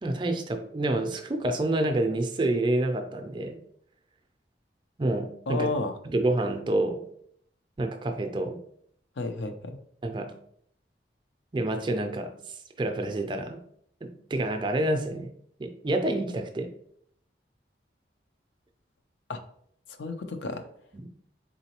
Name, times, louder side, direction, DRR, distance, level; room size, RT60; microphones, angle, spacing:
voice 1, 0.0-3.6 5.0-5.7 6.0-7.0 7.8-8.6 10.0-10.3 11.5-13.6 14.0-15.3 15.6-16.7 20.9-21.1, right 1 dB, 25° right, 5 dB, 0.4 m, -28 dB
voice 2, 5.5-5.9 9.2-9.8 19.3-19.4 20.0-20.7, left 3 dB, 80° left, 6 dB, 0.5 m, -31 dB
3.9 x 3.8 x 2.9 m, 0.67 s
head